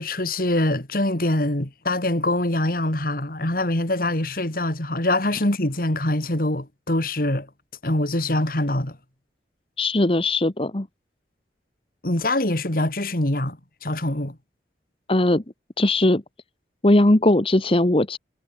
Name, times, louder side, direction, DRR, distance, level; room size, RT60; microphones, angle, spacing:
voice 1, 0.0-7.5 7.8-9.0 12.0-14.4, left 1 dB, 55° left, 3.0 m, -24 dB
voice 2, 9.8-10.9 15.1-15.4 15.8-16.2 16.8-18.2, left 1 dB, 30° left, 1.1 m, -19 dB
head